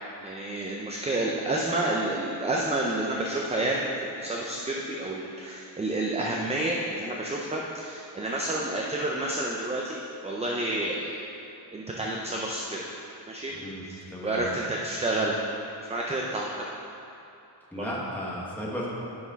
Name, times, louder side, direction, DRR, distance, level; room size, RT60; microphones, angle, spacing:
voice 1, 0.2-11.1 11.7-12.9 13.3-13.5 13.9-15.4 15.9-16.6 17.8-17.9, right 1 dB, 15° right, -2 dB, 0.4 m, -29 dB
voice 2, 13.5-14.4 17.7-18.9, equal, 5° left, -6 dB, 1.3 m, -35 dB
10.5 x 6.1 x 4.0 m, 2.8 s
wide cardioid pair, 180°, 43 cm